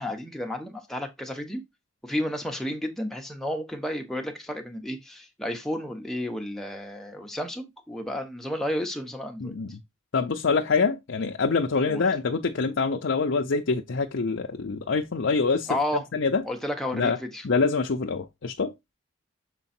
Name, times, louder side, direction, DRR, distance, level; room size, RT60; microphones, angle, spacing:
voice 1, 0.0-1.6 2.0-9.5 11.9-12.0 15.7-16.0 16.4-17.4, left 1 dB, ahead, 1.0 m, -32 dB
voice 2, 9.4-9.8 10.1-16.4 16.9-17.2 17.4-18.7, left 4 dB, 70° left, 0.6 m, -25 dB
6.8 x 3.9 x 4.3 m
head